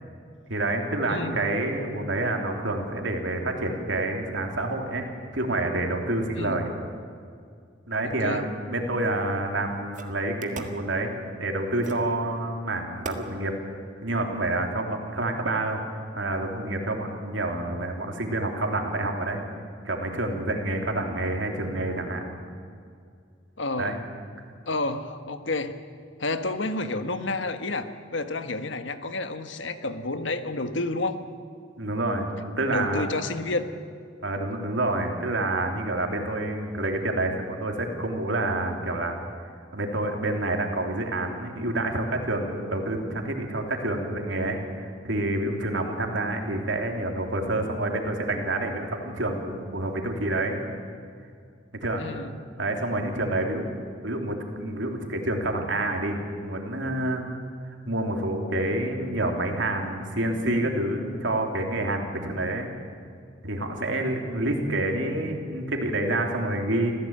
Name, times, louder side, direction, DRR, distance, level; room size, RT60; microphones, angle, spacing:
voice 1, 0.5-5.0 5.3-6.7 7.9-11.1 11.4-13.5 14.0-15.8 16.1-19.4 19.8-22.4 23.8-24.0 31.8-33.1 34.2-39.2 39.7-50.6 51.8-52.0 52.6-53.7 54.0-57.3 57.8-62.7 63.4-66.9, right 1 dB, 75° right, 2 dB, 3.3 m, -28 dB
voice 2, 1.1-1.4 6.4-6.6 8.0-8.4 23.6-24.0 24.7-25.7 26.2-31.2 32.7-33.7 52.0-52.3, left 2 dB, 75° left, 9 dB, 1.5 m, -30 dB
sound 1, 9.2-9.3 9.9-10.8 11.8-12.1 13.0-13.3, right 3 dB, 45° right, 1.7 m, -38 dB
26.5 x 16.0 x 8.9 m, 2.2 s
head